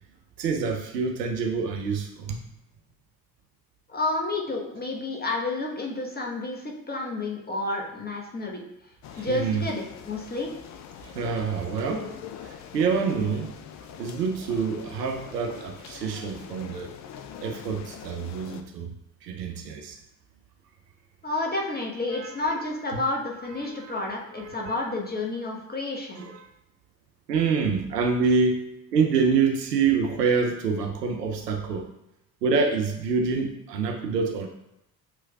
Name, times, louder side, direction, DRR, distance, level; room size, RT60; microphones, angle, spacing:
voice 1, 0.4-2.4 9.1-9.6 11.0-12.1 12.4-13.5 14.0-16.9 17.4-18.9 19.2-20.0 22.1-22.4 23.6-23.9 24.3-24.8 26.2-26.5 27.3-28.6 28.9-31.9 32.4-34.5, right 5 dB, 85° right, 4 dB, 0.6 m, -26 dB
voice 2, 3.9-8.6 9.2-10.5 21.2-26.2, left 2 dB, 20° left, -1 dB, 1.1 m, -30 dB
sound 1, 9.0-18.6, left 8 dB, 40° left, 0.4 m, -43 dB
7.1 x 3.1 x 2.3 m, 0.83 s
figure-of-eight pair, 50°, 48 cm